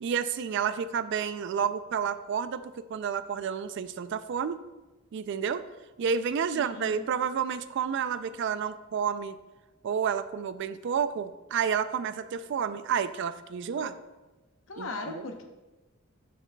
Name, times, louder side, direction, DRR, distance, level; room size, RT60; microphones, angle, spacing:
voice 1, 0.0-4.6 5.1-5.7 6.0-9.4 9.8-13.9 14.8-15.2, right 7 dB, 55° right, 13 dB, 0.3 m, -30 dB
voice 2, 6.5-7.0 13.8-13.9 14.7-15.4, left 2 dB, 65° left, 5 dB, 0.8 m, -38 dB
7.3 x 6.8 x 2.2 m, 1.1 s
head